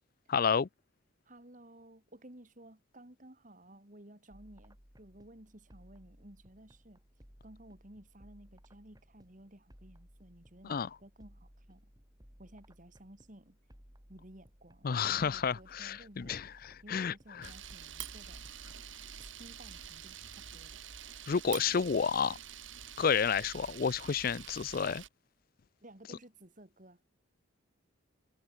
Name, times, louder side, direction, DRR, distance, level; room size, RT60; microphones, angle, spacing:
voice 1, 0.3-0.7 10.7-10.9 14.8-17.5 21.3-22.4 23.0-25.0, left 6 dB, 45° left, 0.4 m, -31 dB
voice 2, 1.2-7.0 7.4-11.9 12.4-13.6 14.1-16.6 16.8-18.7 19.2-20.8 25.8-27.0, right 1 dB, 40° right, 2.8 m, -55 dB
sound 1, 4.3-21.9, equal, 20° right, 4.5 m, -60 dB
Camera, 17.4-25.1, right 9 dB, 70° right, 3.7 m, -47 dB
head